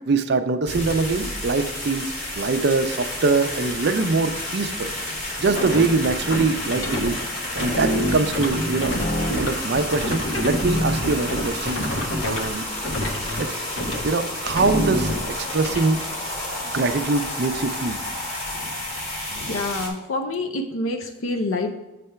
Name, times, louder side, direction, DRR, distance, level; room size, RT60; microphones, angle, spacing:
voice 1, 0.1-4.9 5.4-7.2 7.6-9.0 9.3-11.8 12.2-12.7 13.4-13.6 14.0-16.0 16.6-18.0, right 3 dB, 55° right, 8 dB, 0.5 m, -23 dB
sound 1, 0.7-19.9, left 1 dB, 35° left, 1.8 m, -31 dB
sound 2, 5.4-7.1 7.5-12.5 12.8-13.4 13.8-14.0 14.5-15.8, equal, 65° left, 1.1 m, -26 dB
voice 2, 19.3-21.7, left 2 dB, 85° left, 4 dB, 0.6 m, -27 dB
7.5 x 3.4 x 5.6 m, 1.0 s
head